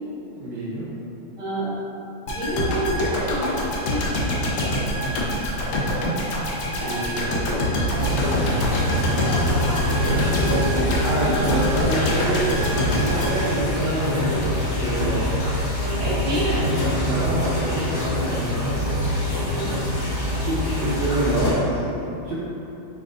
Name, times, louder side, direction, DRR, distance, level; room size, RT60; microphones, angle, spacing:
voice 1, 0.4-0.9 4.6-5.2 6.6-8.1 11.0-15.3 17.0-18.6 20.4-22.4, right 1 dB, 65° right, -10 dB, 1.3 m, -27 dB
voice 2, 1.4-1.8 2.3-4.2 6.8-7.6 9.1-12.2 15.8-16.7 19.5-20.6, right 1 dB, 15° right, -13 dB, 1.2 m, -30 dB
sound 1, 2.3-14.3 14.6-14.8, equal, 70° left, 1.0 m, -26 dB
sound 2, 8.0-21.5, left 1 dB, 55° left, 0.6 m, -24 dB
5.1 x 3.4 x 2.5 m, 2.9 s
omnidirectional pair, 2.4 m